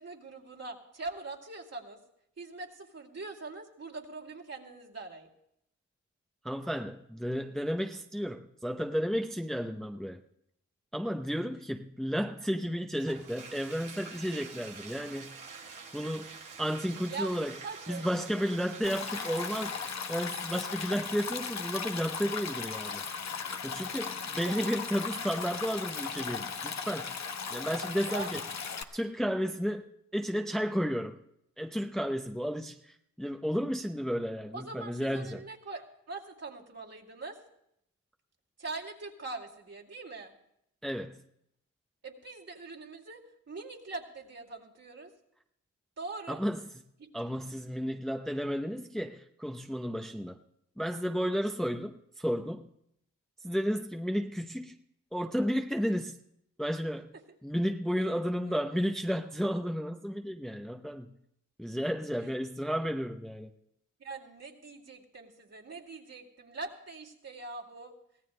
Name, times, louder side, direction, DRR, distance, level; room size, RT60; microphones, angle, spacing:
voice 1, 0.0-2.0 2.4-5.3 17.1-17.4 17.6-18.0 23.5-23.6 24.4-24.6 28.0-28.3 34.5-37.4 38.6-40.3 42.0-43.2 43.5-45.1 46.0-46.4 47.0-47.1 62.2-62.3 64.0-67.9, right 3 dB, 50° right, -1 dB, 2.3 m, -42 dB
voice 2, 6.4-10.2 10.9-15.4 15.9-17.5 17.9-19.8 20.1-23.0 23.6-27.1 27.5-28.4 28.9-29.9 30.1-31.2 31.6-35.4 40.8-41.2 46.3-46.6 47.1-50.4 50.8-52.6 53.4-54.8 55.1-56.2 56.6-57.1 57.4-61.1 61.6-63.5, equal, ahead, 4 dB, 0.7 m, -32 dB
Bathtub (filling or washing), 12.9-20.2, right 5 dB, 75° right, 1.4 m, -47 dB
Stream, 18.8-28.8, left 6 dB, 60° left, 0.9 m, -37 dB
24.0 x 17.0 x 2.2 m, 0.75 s
cardioid pair, 60°, 31 cm